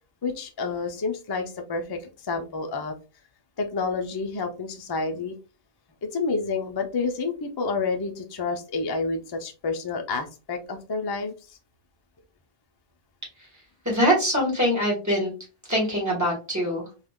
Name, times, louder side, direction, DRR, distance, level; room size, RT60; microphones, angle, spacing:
voice 1, 0.2-2.9 3.6-5.3 6.1-11.6, left 4 dB, 40° left, 4 dB, 0.3 m, -29 dB
voice 2, 13.8-15.3 15.7-16.8, equal, 15° right, -2 dB, 1.5 m, -23 dB
3.5 x 2.4 x 2.2 m, 0.32 s
omnidirectional pair, 1.1 m